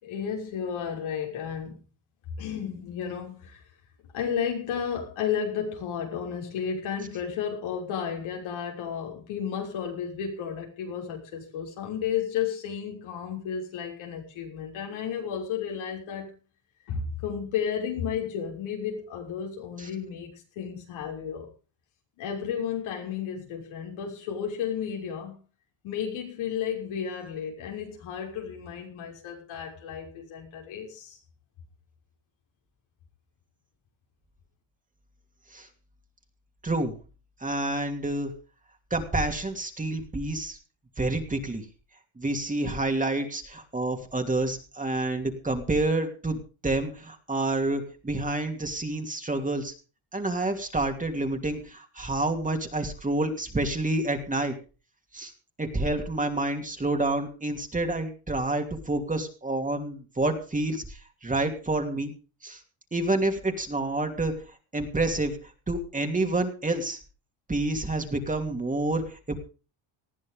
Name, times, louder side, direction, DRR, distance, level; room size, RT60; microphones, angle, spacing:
voice 1, 0.0-1.8 2.4-3.6 4.1-16.3 16.9-21.5 22.2-25.3 25.8-31.2, left 8 dB, 85° left, 6.2 m, -33 dB
voice 2, 36.6-36.9 37.4-38.3 38.9-40.6 41.0-41.6 42.2-49.7 50.1-54.5 55.1-55.3 55.6-62.1 62.4-62.6 62.9-64.3 64.7-65.4 65.7-67.0 67.5-69.3, right 2 dB, 15° right, 2.8 m, -28 dB
19.5 x 14.0 x 3.8 m
cardioid pair, 125°, 47 cm